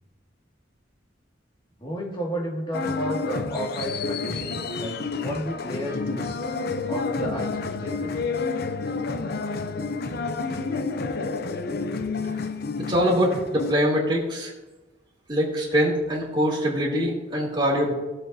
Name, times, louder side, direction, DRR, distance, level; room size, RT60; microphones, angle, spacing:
voice 1, 1.8-6.3 6.9-8.2 11.0-11.1, equal, 25° left, -2 dB, 2.0 m, -32 dB
sound 1, 2.7-13.7, left 4 dB, 55° left, 0.5 m, -29 dB
voice 2, 12.9-14.5 15.3-17.9, equal, 25° right, -3 dB, 2.6 m, -23 dB
16.5 x 7.6 x 2.7 m, 1.1 s
head